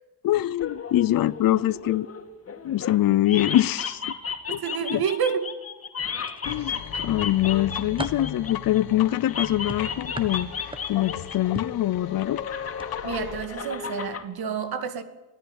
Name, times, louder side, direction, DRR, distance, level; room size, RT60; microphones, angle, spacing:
voice 1, 0.2-2.1 2.6-4.0 4.5-5.0 6.5-10.5 10.8-12.4, left 14 dB, 65° left, 0.7 m, -24 dB
sound 1, 0.6-3.0 3.3-8.8 9.3-11.4 11.6-14.2, left 6 dB, 40° left, 2.7 m, -34 dB
voice 2, 4.5-5.5 13.0-15.0, right 7 dB, 80° right, 2.5 m, -29 dB
sound 2, 6.1-6.9 7.4-8.3 9.7-11.1 11.5-11.8 12.7-12.9 13.3-13.4, right 2 dB, 15° right, 1.4 m, -38 dB
sound 3, 6.4-13.5, left 10 dB, 85° left, 1.7 m, -37 dB
25.0 x 16.0 x 8.9 m
wide cardioid pair, 165°, 37 cm